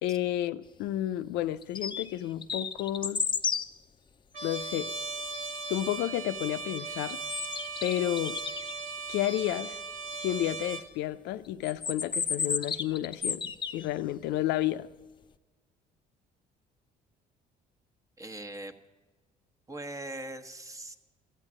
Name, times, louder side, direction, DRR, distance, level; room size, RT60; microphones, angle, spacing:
voice 1, 0.0-3.2 4.4-4.9 5.7-7.2 7.8-8.4 9.1-9.8 10.2-14.9, left 13 dB, 90° left, 0.6 m, -31 dB
sound 1, 1.6-2.2 2.4-3.7 7.0-8.7 11.6-13.9, left 6 dB, 30° left, 0.6 m, -32 dB
Trumpet, 4.3-10.9, right 3 dB, 50° right, 1.4 m, -38 dB
voice 2, 18.2-18.7 19.7-21.0, right 2 dB, 20° right, 1.1 m, -40 dB
14.5 x 8.2 x 8.6 m
cardioid pair, 110°, 17 cm